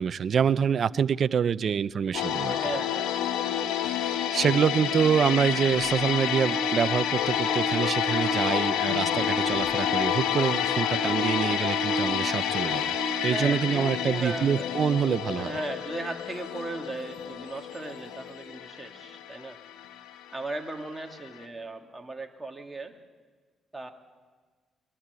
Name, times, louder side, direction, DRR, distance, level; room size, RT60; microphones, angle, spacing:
voice 1, 0.0-2.6 3.8-13.0 13.2-15.6, right 7 dB, 55° right, 17 dB, 0.5 m, -26 dB
sound 1, 2.1-21.0 21.2-21.4, left 10 dB, 85° left, 1.0 m, -29 dB
voice 2, 2.5-3.1 13.3-14.7 15.4-19.6 20.3-23.0 23.7-23.9, right 2 dB, 15° right, 3 dB, 2.1 m, -37 dB
sound 2, 5.6-15.4 17.7-17.8, right 2 dB, 35° left, 7.5 m, -36 dB
21.5 x 13.5 x 9.4 m, 1.5 s
cardioid pair, 90°, 0 cm